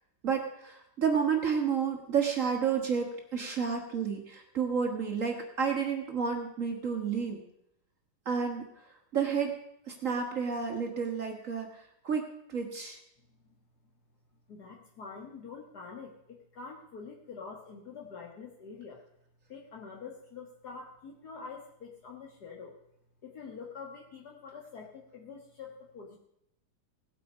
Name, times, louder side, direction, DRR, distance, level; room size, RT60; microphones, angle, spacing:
voice 1, 0.2-7.4 8.2-8.7 9.1-9.5 9.9-13.0, right 6 dB, 60° right, 3 dB, 0.8 m, -31 dB
voice 2, 13.3-13.6 14.5-19.0 19.5-22.7 23.2-26.2, left 5 dB, 50° left, -1 dB, 1.3 m, -46 dB
18.0 x 8.5 x 5.5 m, 0.77 s
omnidirectional pair, 3.7 m